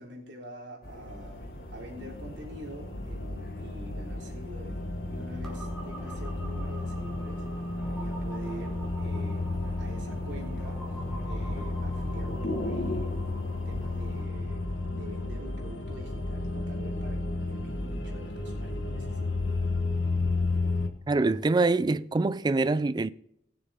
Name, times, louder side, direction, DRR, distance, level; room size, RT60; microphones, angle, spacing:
voice 1, 0.0-7.4 7.9-9.5 9.8-10.8 11.2-13.2 13.7-19.5, right 1 dB, 75° right, 3.6 m, -46 dB
sound 1, 0.8-14.2, left 1 dB, 55° left, 1.7 m, -42 dB
sound 2, 1.1-20.9, left 2 dB, 80° left, 1.4 m, -33 dB
sound 3, 5.4-19.0, right 1 dB, 5° left, 2.7 m, -48 dB
voice 2, 21.1-23.1, right 3 dB, 25° right, 0.3 m, -25 dB
20.0 x 6.8 x 3.7 m
head